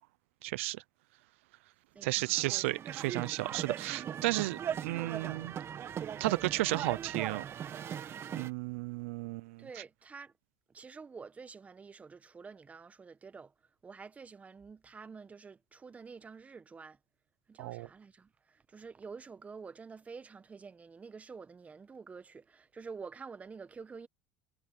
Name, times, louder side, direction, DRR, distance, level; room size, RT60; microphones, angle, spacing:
voice 1, 0.4-0.8 2.0-5.5 6.2-7.4 8.3-9.7 17.6-17.9, right 20 dB, 85° right, 0.5 m, -33 dB
voice 2, 1.9-2.7 9.6-10.3 10.7-13.5 13.8-17.0 17.5-24.1, right 5 dB, 20° right, 1.1 m, -48 dB
sound 1, 2.2-8.5, right 9 dB, 40° right, 1.7 m, -39 dB
supercardioid pair, 110°, 7 cm